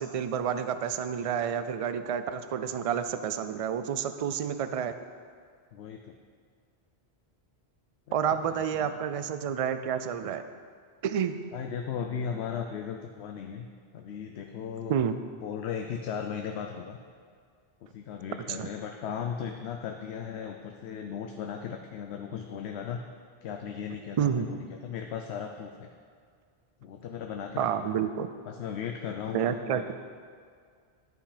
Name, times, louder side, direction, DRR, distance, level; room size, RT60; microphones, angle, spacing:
voice 1, 0.0-4.9 8.1-10.4 11.0-11.4 14.9-15.2 18.5-18.7 24.2-24.5 27.6-28.3 29.3-29.9, right 8 dB, 55° right, 10 dB, 0.4 m, -29 dB
voice 2, 5.7-6.1 8.4-8.9 11.5-13.7 13.9-14.9 15.4-17.0 17.8-23.0 23.4-25.9 26.8-27.9 28.5-29.9, left 7 dB, 90° left, 4 dB, 0.9 m, -37 dB
11.0 x 5.7 x 5.0 m, 2.1 s
omnidirectional pair, 1.1 m